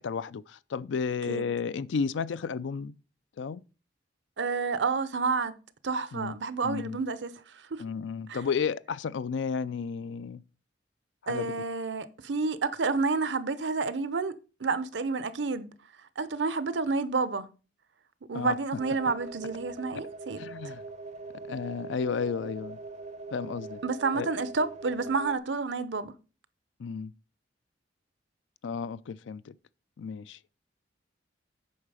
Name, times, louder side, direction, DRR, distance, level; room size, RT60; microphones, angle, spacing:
voice 1, 0.0-3.0 3.4-3.6 6.1-6.3 6.6-7.0 7.8-10.4 11.2-11.5 18.3-18.6 20.4-20.8 21.4-22.8 23.3-23.8 24.1-24.3 26.8-27.1 28.6-29.5 30.0-30.4, left 5 dB, 85° left, 0.4 m, -32 dB
voice 2, 4.4-5.6 5.8-7.8 8.3-8.4 11.3-15.7 16.2-17.5 18.3-20.4 23.8-26.1, right 4 dB, 75° right, 0.7 m, -30 dB
sound 1, 18.8-25.4, right 3 dB, 40° right, 0.5 m, -42 dB
8.7 x 5.6 x 4.8 m
head